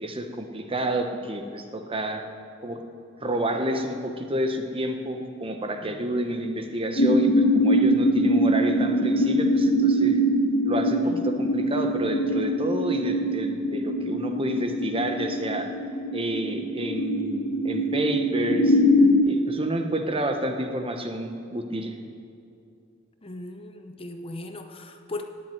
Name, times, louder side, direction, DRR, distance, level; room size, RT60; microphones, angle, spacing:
voice 1, 0.0-2.2 2.6-2.8 3.2-10.2 10.6-15.7 16.1-18.8 19.3-21.9, right 1 dB, 25° right, 5 dB, 1.1 m, -29 dB
sound 1, 7.0-19.2, equal, 65° left, 1.9 m, -23 dB
voice 2, 23.2-25.3, left 2 dB, 30° left, 7 dB, 0.8 m, -38 dB
17.0 x 7.7 x 9.7 m, 2.6 s
head